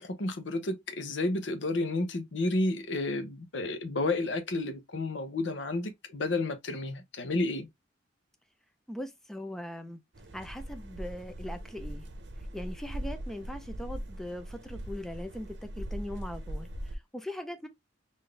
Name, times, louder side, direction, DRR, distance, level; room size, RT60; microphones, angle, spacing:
voice 1, 0.0-7.7, left 2 dB, 65° left, 0.8 m, -31 dB
voice 2, 8.9-10.0 10.3-12.0 12.5-17.7, left 1 dB, ahead, 0.4 m, -40 dB
sound 1, 10.1-16.9, equal, 60° right, 0.8 m, -40 dB
3.9 x 2.6 x 3.2 m
head